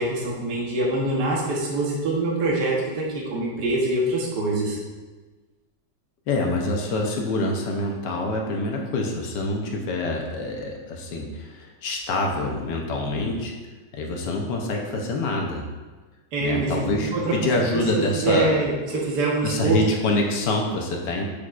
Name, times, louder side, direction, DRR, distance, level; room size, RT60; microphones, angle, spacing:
voice 1, 0.0-4.8 16.3-17.3 18.1-19.8, right 2 dB, 65° right, -3 dB, 1.7 m, -24 dB
voice 2, 6.3-13.5 13.9-15.7 16.4-18.6 19.4-21.2, left 2 dB, 75° left, 1 dB, 1.5 m, -26 dB
6.8 x 6.1 x 2.5 m, 1.3 s
omnidirectional pair, 1.9 m